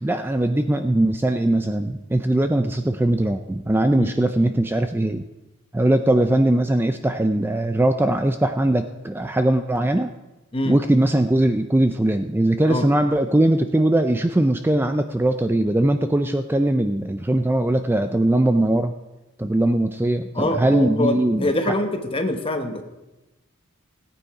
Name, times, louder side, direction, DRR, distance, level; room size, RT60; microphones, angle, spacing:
voice 1, 0.0-5.2 5.7-10.1 10.7-18.9 19.4-21.7, right 1 dB, 10° right, 8 dB, 0.4 m, -20 dB
voice 2, 20.3-22.8, left 1 dB, 25° left, 5 dB, 1.2 m, -24 dB
17.0 x 9.0 x 4.8 m, 1.1 s
head